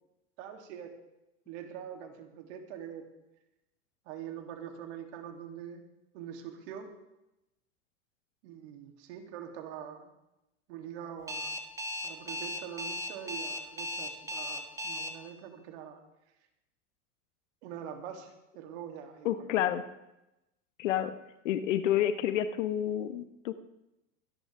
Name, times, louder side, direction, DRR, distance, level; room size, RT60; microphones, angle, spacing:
voice 1, 0.4-0.9 1.5-3.1 4.1-5.8 6.1-6.9 8.4-10.1 10.7-11.6 12.0-16.0 17.6-19.7, right 9 dB, 60° right, 4 dB, 2.8 m, -44 dB
Alarm, 11.3-15.1, left 1 dB, 10° right, 2.1 m, -36 dB
voice 2, 19.2-19.8 20.8-21.1 21.4-23.5, left 11 dB, 70° left, 11 dB, 1.2 m, -29 dB
24.5 x 11.0 x 3.5 m, 0.91 s
hypercardioid pair, 110°, 38 cm